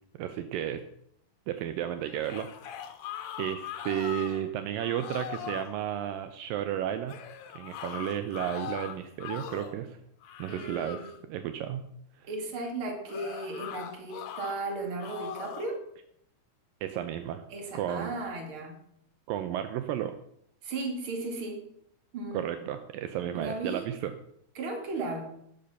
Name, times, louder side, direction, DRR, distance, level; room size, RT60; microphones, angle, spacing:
voice 1, 0.2-0.8 1.5-2.9 3.4-7.2 7.6-10.0 10.4-11.9 16.8-17.4 17.7-18.1 19.3-20.1 22.3-24.1, right 11 dB, 85° right, 9 dB, 2.0 m, -33 dB
sound 1, 2.0-4.5 4.8-5.7 7.1-9.8 10.2-11.2 13.1-14.6 15.0-15.7, left 9 dB, 65° left, 2.5 m, -40 dB
voice 2, 10.5-11.1 12.3-15.8 17.5-18.8 20.6-21.6 22.1-22.4 23.3-23.9 24.5-25.3, right 2 dB, 40° right, 3 dB, 2.6 m, -35 dB
12.5 x 10.5 x 5.6 m, 0.70 s
omnidirectional pair, 4.9 m